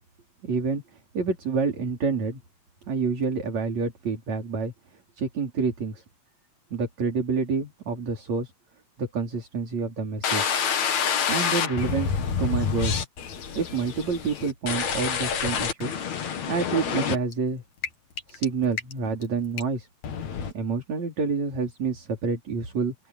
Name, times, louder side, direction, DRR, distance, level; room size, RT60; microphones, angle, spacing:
voice 1, 0.4-0.8 1.1-2.4 2.9-4.7 5.2-6.0 6.7-8.5 9.0-10.5 11.3-13.0 13.6-15.9 16.5-17.6 18.3-19.9 20.5-22.9, right 5 dB, 50° right, 5.6 m, -28 dB
sound 1, 10.2-17.3 17.8-17.9 18.2-18.4 18.8-19.2 19.6-19.7 20.0-20.5, left 7 dB, 55° left, 3.1 m, -27 dB
open air
omnidirectional pair, 4.1 m